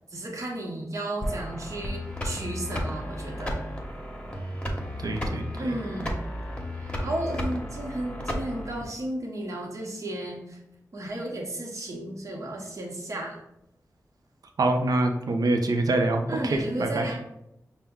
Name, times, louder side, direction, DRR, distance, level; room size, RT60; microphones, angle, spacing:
voice 1, 0.1-3.6 5.6-6.2 6.7-10.6 10.9-13.4 16.3-17.3, right 1 dB, 50° right, -1 dB, 1.0 m, -34 dB
sound 1, 1.2-8.8, equal, 15° left, 1.0 m, -33 dB
voice 2, 5.0-5.7 14.6-17.1, right 2 dB, 75° right, 5 dB, 0.6 m, -25 dB
5.7 x 2.1 x 3.6 m, 0.82 s
wide cardioid pair, 80°, 6 cm